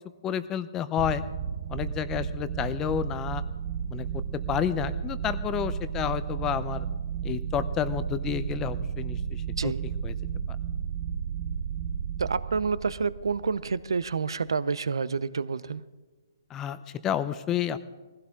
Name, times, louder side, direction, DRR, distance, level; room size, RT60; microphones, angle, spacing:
voice 1, 0.2-1.2 1.7-3.4 3.9-6.9 7.2-9.7 10.0-10.1 16.5-17.8, left 9 dB, 15° left, 13 dB, 0.7 m, -30 dB
sound 1, 1.0-14.3, right 7 dB, 40° right, 0.9 m, -33 dB
voice 2, 9.4-9.8 12.2-15.8, right 5 dB, 85° right, 17 dB, 0.7 m, -29 dB
20.0 x 16.0 x 3.7 m, 1.3 s
hypercardioid pair, 150°, 2 cm